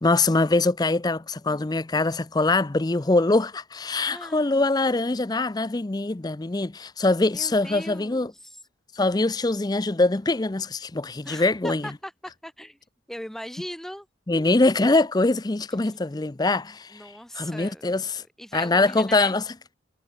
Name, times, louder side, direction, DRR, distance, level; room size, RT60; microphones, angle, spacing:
voice 1, 0.0-8.3 8.9-11.9 14.3-17.0 17.3-18.2 18.5-19.4, left 2 dB, 20° left, 0.5 m, -23 dB
voice 2, 4.0-4.7 7.3-8.6 11.2-12.8 13.1-14.1 15.8-16.2 16.9-19.3, equal, ahead, 1.4 m, -40 dB
head